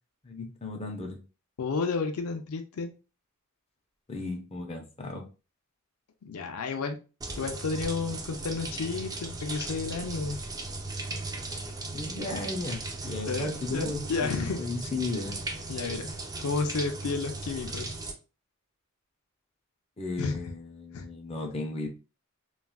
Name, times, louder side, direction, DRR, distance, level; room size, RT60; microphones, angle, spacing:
voice 1, 0.2-1.2 4.1-5.3 11.9-15.4 20.0-21.9, left 3 dB, 30° left, 2 dB, 0.6 m, -35 dB
voice 2, 1.6-2.9 6.2-7.0 7.4-10.4 13.3-14.6 15.7-16.1 16.4-17.9 20.2-20.4 20.9-21.1, left 4 dB, 85° left, 6 dB, 0.5 m, -31 dB
sound 1, 7.2-18.1, right 2 dB, 15° right, 0.4 m, -37 dB
3.5 x 2.3 x 2.3 m, 0.33 s
head